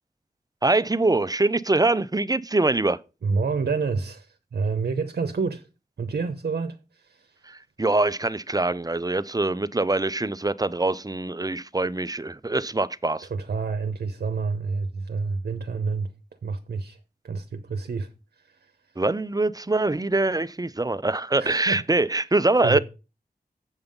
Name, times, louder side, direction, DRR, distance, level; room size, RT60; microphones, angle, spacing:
voice 1, 0.6-3.0 7.5-13.3 19.0-22.8, right 2 dB, 25° right, 0.6 m, -24 dB
voice 2, 3.2-5.7 6.0-7.4 13.3-16.1 16.4-17.0 17.2-18.1 18.4-18.7 21.4-21.8 22.6-22.8, right 4 dB, 85° right, 0.8 m, -28 dB
8.1 x 5.5 x 5.2 m
cardioid pair, 45°, 16 cm